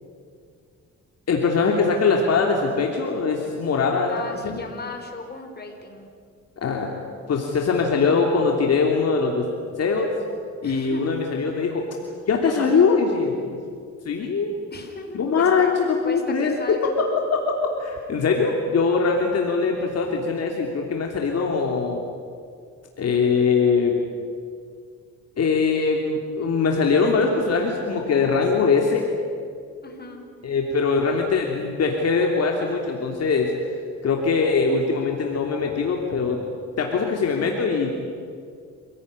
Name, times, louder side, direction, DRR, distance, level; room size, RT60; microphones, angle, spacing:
voice 1, 1.3-4.6 6.6-7.0 7.3-9.4 9.8-10.1 10.6-11.8 12.3-13.6 14.0-14.5 15.1-16.9 17.3-22.0 23.0-24.0 25.4-29.0 30.4-33.5 34.0-36.4 36.8-37.9, left 4 dB, 55° left, 1 dB, 3.2 m, -22 dB
voice 2, 4.1-6.1 10.6-11.1 14.7-15.7 16.0-17.0 29.8-30.2, left 3 dB, 35° left, 4 dB, 4.8 m, -36 dB
27.0 x 17.5 x 9.7 m, 2.2 s
cardioid pair, 90°, 30 cm